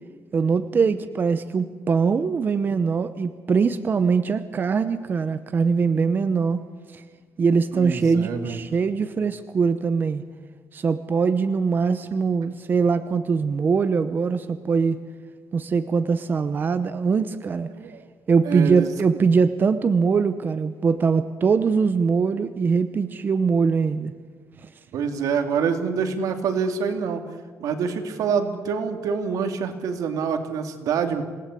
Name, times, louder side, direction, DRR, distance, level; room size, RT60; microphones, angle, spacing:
voice 1, 0.3-6.6 6.9-7.0 7.4-10.2 10.7-15.0 15.5-17.7 18.3-24.1 24.6-24.7, right 5 dB, 35° right, 11 dB, 0.8 m, -22 dB
voice 2, 7.7-8.6 17.7-18.0 18.4-18.9 24.9-27.2 27.6-31.2, right 6 dB, 80° right, 6 dB, 2.6 m, -26 dB
27.5 x 18.5 x 8.4 m, 1.5 s
cardioid pair, 145°, 6 cm